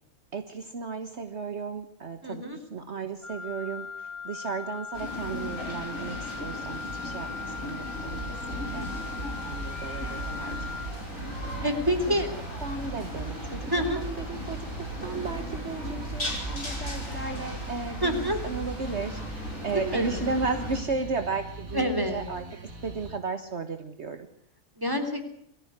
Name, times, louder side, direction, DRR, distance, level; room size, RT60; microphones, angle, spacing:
voice 1, 0.3-8.2 8.5-8.9 9.4-10.9 12.1-12.2 12.6-13.7 13.9-22.4 22.8-24.3, right 4 dB, 55° right, 8 dB, 1.6 m, -35 dB
voice 2, 2.2-2.6 11.4-12.3 13.7-14.0 18.0-18.4 19.7-20.3 21.7-22.2 24.8-25.2, equal, 15° right, 6 dB, 3.3 m, -27 dB
Wind instrument woodwind instrument, 3.2-11.0, left 5 dB, 20° left, 2.5 m, -39 dB
sound 1, 4.9-20.8, left 1 dB, 65° left, 6.1 m, -37 dB
sound 2, 8.1-23.2, right 3 dB, 75° right, 2.9 m, -39 dB
23.0 x 14.5 x 9.5 m, 0.66 s
omnidirectional pair, 1.5 m